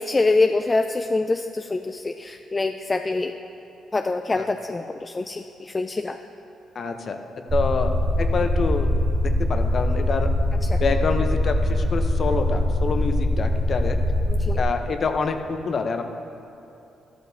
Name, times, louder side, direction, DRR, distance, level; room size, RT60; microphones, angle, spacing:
voice 1, 0.0-3.4 3.9-6.2 10.6-10.8 14.3-14.6, left 3 dB, 25° left, 6 dB, 0.3 m, -25 dB
voice 2, 6.7-7.2 7.5-8.9 9.5-10.4 10.8-14.0 14.6-16.0, left 4 dB, 50° left, 6 dB, 0.8 m, -26 dB
sound 1, 7.5-14.6, left 1 dB, 30° right, 2.3 m, -22 dB
13.5 x 12.0 x 2.8 m, 2.9 s
cardioid pair, 90°, 0 cm